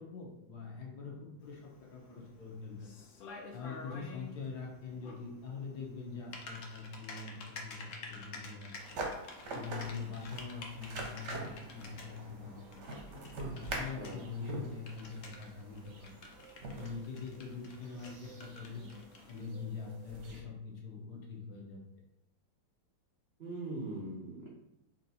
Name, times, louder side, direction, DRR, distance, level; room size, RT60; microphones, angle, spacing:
voice 1, 0.0-2.9 3.5-9.0 9.3-13.1 13.5-16.1 16.7-18.9 19.3-21.8, left 5 dB, 60° left, -1 dB, 1.3 m, -44 dB
Typing, 1.4-19.5, left 3 dB, 75° left, 0.7 m, -51 dB
sound 1, 8.7-20.4, right 2 dB, 55° right, 0.8 m, -45 dB
voice 2, 23.4-24.5, right 2 dB, 75° right, -4 dB, 0.5 m, -41 dB
3.6 x 2.8 x 4.0 m, 0.83 s
omnidirectional pair, 2.1 m